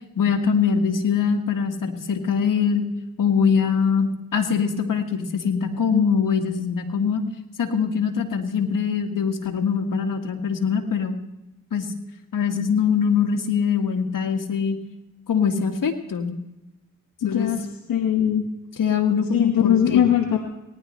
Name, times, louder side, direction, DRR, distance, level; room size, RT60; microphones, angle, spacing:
voice 1, 0.2-2.8 3.2-7.2 7.6-11.1 11.7-11.9 12.3-14.8 15.3-16.4 17.2-17.5 18.8-20.0, left 6 dB, 65° left, 4 dB, 1.9 m, -23 dB
voice 2, 17.2-17.6 17.9-18.5 19.3-20.5, left 9 dB, 80° left, 3 dB, 1.1 m, -20 dB
18.5 x 11.0 x 3.2 m, 0.96 s
supercardioid pair, 45°, 35 cm